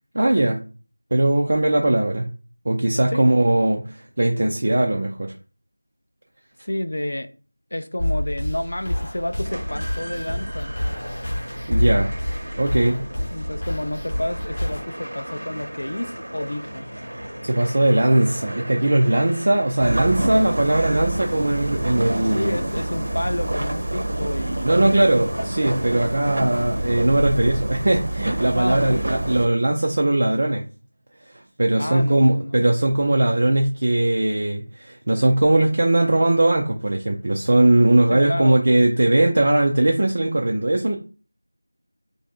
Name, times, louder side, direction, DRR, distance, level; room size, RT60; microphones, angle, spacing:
voice 1, 0.1-0.6 1.1-2.3 2.7-5.3 11.7-12.1 12.6-13.0 17.4-22.6 24.6-30.6 31.3-41.0, right 1 dB, 25° right, 0.3 m, -19 dB
voice 2, 6.6-7.3 7.7-10.7 13.3-16.9 22.2-24.7 28.5-29.1 31.8-32.6 38.1-38.6, left 1 dB, 45° left, 0.4 m, -30 dB
sound 1, 8.0-14.8, left 1 dB, 25° left, 0.9 m, -27 dB
sound 2, 9.4-23.7, equal, 85° right, 1.0 m, -37 dB
sound 3, 19.8-29.5, right 1 dB, 50° right, 0.7 m, -27 dB
3.4 x 2.6 x 3.5 m
figure-of-eight pair, 180°, 0 cm